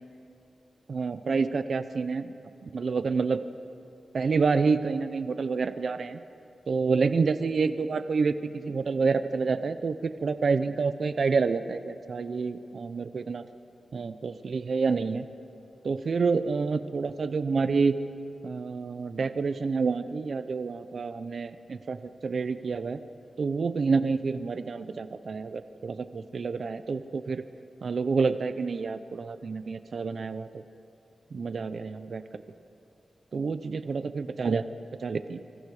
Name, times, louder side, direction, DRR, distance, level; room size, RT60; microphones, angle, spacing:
voice 1, 0.9-2.3 2.6-3.4 4.1-6.2 6.7-13.4 13.9-15.2 15.8-17.9 18.4-22.0 22.2-23.0 23.4-27.4 27.8-30.5 31.3-32.2 33.3-34.7 35.0-35.4, right 4 dB, 50° right, 11 dB, 0.8 m, -28 dB
27.5 x 24.5 x 5.0 m, 2.7 s
wide cardioid pair, 175°, 0 cm